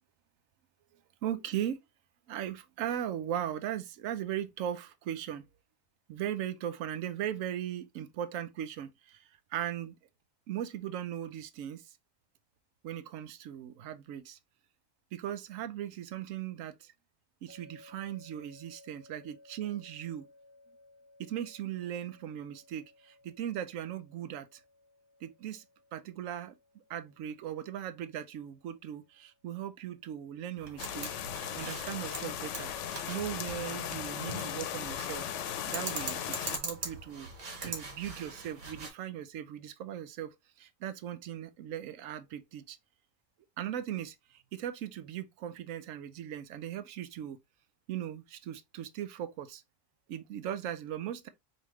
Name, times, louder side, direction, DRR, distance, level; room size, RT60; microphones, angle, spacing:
voice 1, 1.2-1.8 2.3-5.4 6.1-9.2 9.5-10.0 10.5-11.9 12.8-14.4 15.1-16.9 17.4-19.2 19.5-20.3 21.2-22.8 23.4-24.6 25.2-25.6 25.9-26.5 26.9-35.3 35.7-37.3 37.6-42.8 43.6-47.4 47.9-49.6 50.1-51.3, right 10 dB, 90° right, 1.0 m, -38 dB
sound 1, 17.5-30.6, left 2 dB, 50° right, 3.6 m, -61 dB
sound 2, 30.6-38.9, right 3 dB, 70° right, 1.7 m, -43 dB
sound 3, 30.8-36.6, left 9 dB, 70° left, 0.9 m, -37 dB
5.2 x 2.8 x 3.0 m
omnidirectional pair, 1.3 m